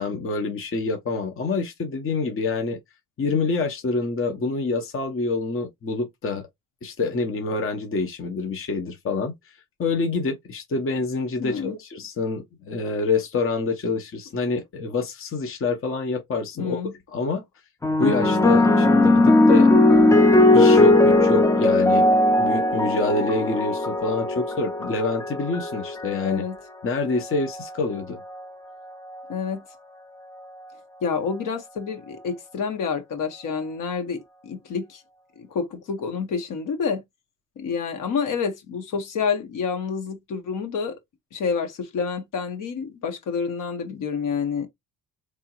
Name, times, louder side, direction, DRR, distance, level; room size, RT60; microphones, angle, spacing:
voice 1, 0.0-2.8 3.2-6.5 6.8-16.8 17.1-17.4 18.0-19.7 20.5-26.4 26.8-28.2, left 3 dB, 35° left, 1.1 m, -27 dB
voice 2, 11.4-11.8 16.6-16.9 26.2-26.5 29.3-29.6 31.0-35.0 35.4-37.0 37.6-41.0 41.3-44.7, left 6 dB, 60° left, 1.6 m, -28 dB
sound 1, 17.8-26.4 27.3-27.7, left 2 dB, 10° left, 0.6 m, -18 dB
3.8 x 3.5 x 3.0 m
supercardioid pair, 85°, 35 cm